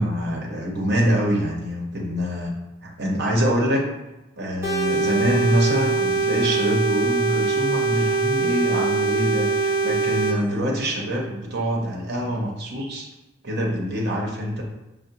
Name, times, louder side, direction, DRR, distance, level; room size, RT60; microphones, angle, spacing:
voice 1, 0.0-2.5 2.8-3.8 4.4-13.1 13.4-14.6, equal, 55° right, -2 dB, 0.9 m, -25 dB
sound 1, 4.6-10.3, right 4 dB, 15° right, 1.1 m, -22 dB
5.7 x 2.1 x 2.8 m, 1.0 s
head